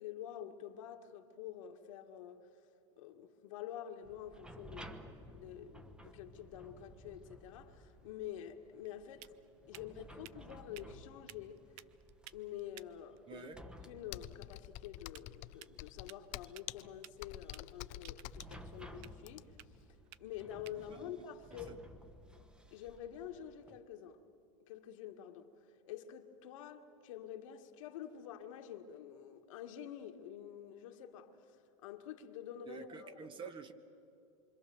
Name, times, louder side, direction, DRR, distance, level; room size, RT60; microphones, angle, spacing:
voice 1, 0.0-2.5 3.0-9.3 9.7-11.6 12.3-13.5 13.8-19.8 20.2-21.8 22.7-24.2 24.7-33.3, left 10 dB, 75° left, 1.7 m, -48 dB
sound 1, 4.0-23.8, equal, 5° right, 1.2 m, -56 dB
sound 2, 7.9-22.6, right 16 dB, 55° right, 0.6 m, -60 dB
voice 2, 13.3-13.6 20.9-21.1 21.7-21.8 32.7-33.7, right 6 dB, 30° right, 1.4 m, -49 dB
Computer keyboard, 14.1-19.7, left 17 dB, 45° left, 0.5 m, -48 dB
27.0 x 25.0 x 7.0 m
supercardioid pair, 125°, 17 cm